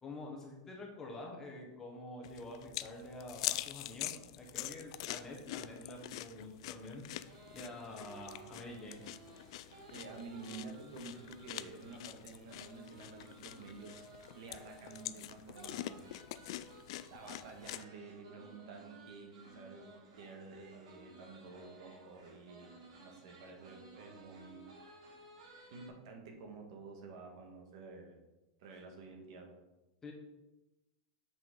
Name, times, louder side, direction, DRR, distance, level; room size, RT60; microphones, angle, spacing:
voice 1, 0.0-7.0 7.5-9.0 30.0-30.1, left 2 dB, 15° left, 0 dB, 1.2 m, -47 dB
sound 1, 2.2-17.8, left 15 dB, 55° left, 0.3 m, -45 dB
sound 2, 7.2-25.9, right 2 dB, 85° right, 2.6 m, -57 dB
voice 2, 9.9-14.0 14.4-16.0 17.1-24.7 25.7-28.2 28.6-29.6, right 4 dB, 60° right, 2 dB, 1.7 m, -50 dB
7.5 x 6.0 x 3.8 m, 1.0 s
supercardioid pair, 165°, 3 cm